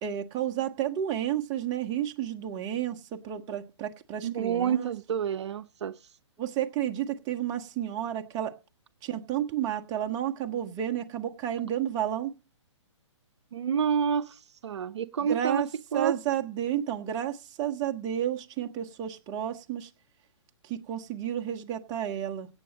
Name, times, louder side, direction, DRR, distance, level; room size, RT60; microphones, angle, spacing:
voice 1, 0.0-4.9 6.4-8.5 9.0-12.3 15.3-15.7 15.9-19.9 20.7-22.5, right 11 dB, 25° right, 5 dB, 1.3 m, -31 dB
voice 2, 4.2-6.0 13.5-15.6 15.9-16.2, right 7 dB, 65° right, 10 dB, 0.8 m, -28 dB
17.5 x 7.1 x 6.4 m, 0.35 s
hypercardioid pair, 145°, 16 cm